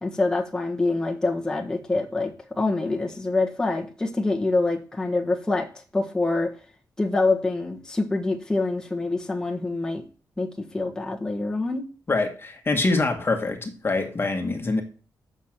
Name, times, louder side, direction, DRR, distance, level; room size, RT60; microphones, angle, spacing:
voice 1, 0.0-6.5 7.0-10.0 10.4-11.8, left 2 dB, 10° left, 1.5 m, -26 dB
voice 2, 12.1-14.8, left 3 dB, 35° left, 1.8 m, -25 dB
6.5 x 6.3 x 7.5 m
cardioid pair, 95°, 7 cm